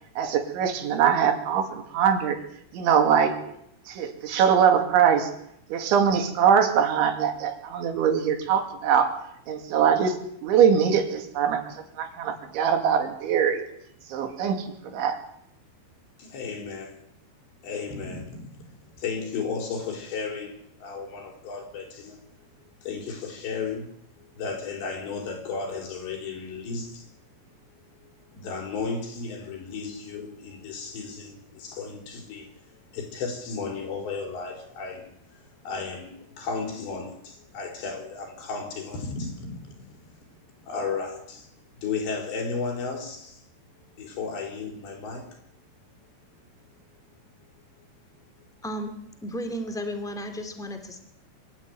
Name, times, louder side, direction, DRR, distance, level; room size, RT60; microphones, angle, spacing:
voice 1, 0.2-2.4 2.7-3.4 3.9-5.3 5.7-9.1 9.5-13.6 14.1-15.2, right 7 dB, 90° right, 4.8 m, -22 dB
voice 2, 16.2-17.0 17.6-18.6 18.9-22.2 22.8-23.9 24.3-27.1 28.3-32.5 32.9-40.1 40.6-41.5 41.8-43.4 44.0-45.3, left 4 dB, 75° left, 6.1 m, -34 dB
voice 3, 49.2-51.0, equal, ahead, 1.6 m, -33 dB
25.0 x 13.0 x 9.3 m
omnidirectional pair, 5.2 m